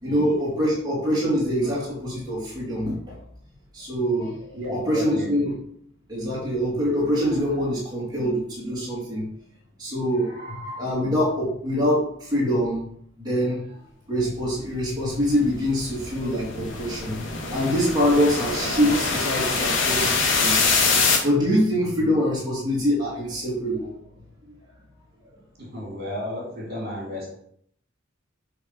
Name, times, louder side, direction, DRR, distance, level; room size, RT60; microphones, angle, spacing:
voice 1, 0.0-3.2 3.7-5.6 6.1-9.3 9.8-12.8 13.2-13.8 14.1-20.5 21.0-23.9, equal, 20° right, -6 dB, 2.3 m, -24 dB
voice 2, 4.5-5.3 18.0-18.2 25.6-27.3, left 1 dB, 50° right, -3 dB, 2.9 m, -33 dB
sound 1, 15.2-21.2, left 4 dB, 70° left, 1.9 m, -24 dB
8.1 x 3.8 x 5.2 m, 0.65 s
head